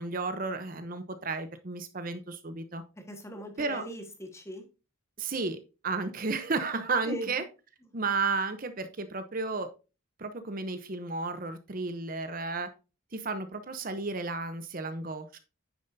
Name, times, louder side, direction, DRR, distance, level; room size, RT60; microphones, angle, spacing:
voice 1, 0.0-2.8 3.6-3.8 5.2-5.6 5.8-7.4 7.9-9.7 10.2-12.7 13.1-15.4, right 3 dB, 45° right, 10 dB, 0.8 m, -33 dB
voice 2, 3.0-4.7 7.0-7.4, right 1 dB, 15° left, 4 dB, 1.6 m, -40 dB
9.6 x 7.1 x 2.7 m, 0.31 s
head